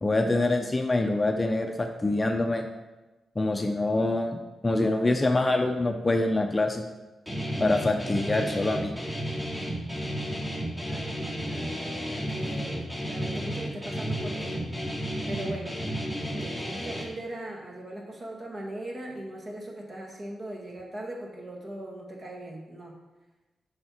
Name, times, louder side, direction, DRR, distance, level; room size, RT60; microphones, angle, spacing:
voice 1, 0.0-2.6 3.4-6.8 7.6-8.9, left 2 dB, 20° left, 4 dB, 0.6 m, -25 dB
Guitar, 7.3-17.0, equal, 15° right, 2.7 m, -32 dB
voice 2, 10.8-14.6 15.3-15.8 16.2-22.9, right 1 dB, 40° right, 0 dB, 1.9 m, -39 dB
7.8 x 5.7 x 4.4 m, 1.1 s
cardioid pair, 80°, 0 cm